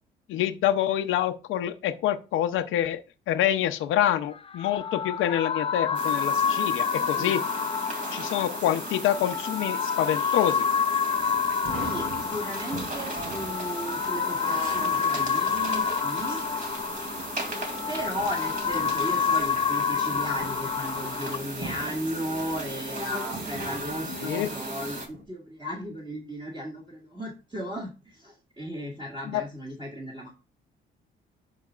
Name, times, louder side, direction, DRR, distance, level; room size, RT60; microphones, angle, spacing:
voice 1, 0.3-3.0 3.3-7.4 8.1-10.6 24.2-24.5 29.3-29.4, left 11 dB, 85° left, 7 dB, 0.6 m, -26 dB
sound 1, 4.4-21.4, left 6 dB, 30° left, 0.4 m, -28 dB
sound 2, 5.9-25.1, right 2 dB, 45° right, 2.7 m, -36 dB
sound 3, 11.1-25.2, right 2 dB, 70° right, 2.8 m, -44 dB
voice 2, 11.8-16.4 17.9-30.3, equal, 25° right, -4 dB, 2.1 m, -35 dB
11.5 x 4.0 x 2.4 m, 0.31 s
cardioid pair, 90°, 20 cm